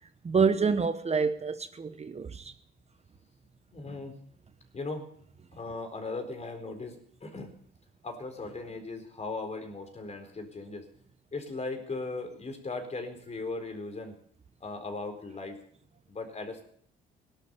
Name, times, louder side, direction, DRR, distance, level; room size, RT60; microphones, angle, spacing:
voice 1, 0.2-2.5, right 5 dB, 30° right, 1.1 m, -27 dB
voice 2, 3.7-4.2 4.7-5.1 5.5-7.5 8.0-10.9 11.3-14.1 14.6-15.6 16.1-16.6, left 3 dB, 35° left, 4.3 m, -38 dB
18.0 x 11.5 x 6.9 m
cardioid pair, 90°, 20 cm